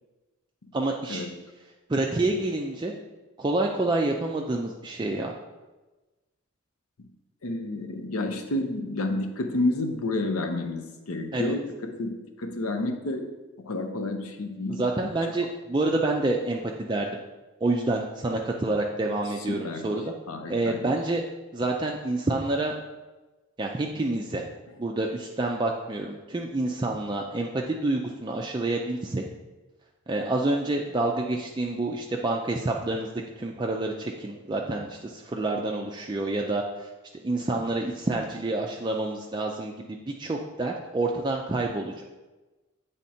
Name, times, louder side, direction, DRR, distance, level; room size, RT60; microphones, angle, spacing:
voice 1, 0.7-1.3 1.9-2.9 3.4-5.3 11.3-11.5 14.7-17.2 17.6-20.0 20.5-21.2 21.5-22.7 23.6-24.4 24.8-29.2 30.1-36.9 37.2-42.0, right 2 dB, 20° right, 0 dB, 0.3 m, -28 dB
voice 2, 7.4-13.2 13.7-14.9 19.5-20.0 20.3-20.9, left 2 dB, 85° left, 5 dB, 0.7 m, -30 dB
8.6 x 3.5 x 4.2 m, 1.2 s
head